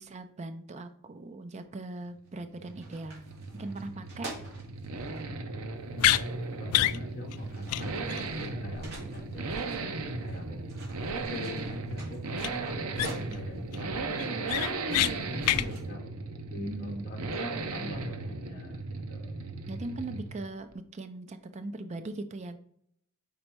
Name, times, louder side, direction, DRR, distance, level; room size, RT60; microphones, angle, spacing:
voice 1, 0.0-3.3 3.5-4.3 16.6-17.3 19.7-22.6, right 2 dB, 30° right, 9 dB, 0.4 m, -40 dB
sound 1, 2.1-2.3 2.6-5.2 6.4-6.5 7.1-10.4 10.7-13.7 14.3-15.8, right 2 dB, 50° right, 2.4 m, -47 dB
Accelerating revving vroom, 2.3-20.5 20.7-20.8, right 3 dB, 75° right, 0.7 m, -36 dB
voice 2, 5.9-10.6 11.3-19.4, left 2 dB, 40° left, 0 dB, 0.8 m, -44 dB
sound 2, 6.0-6.2 6.7-7.0 7.3-7.4 7.7-7.8 8.1-8.2 12.4-12.5 13.0-13.3 13.7-13.8 14.2-15.1 15.4-15.7, left 14 dB, 85° left, 0.3 m, -25 dB
5.3 x 4.3 x 4.5 m, 0.68 s
head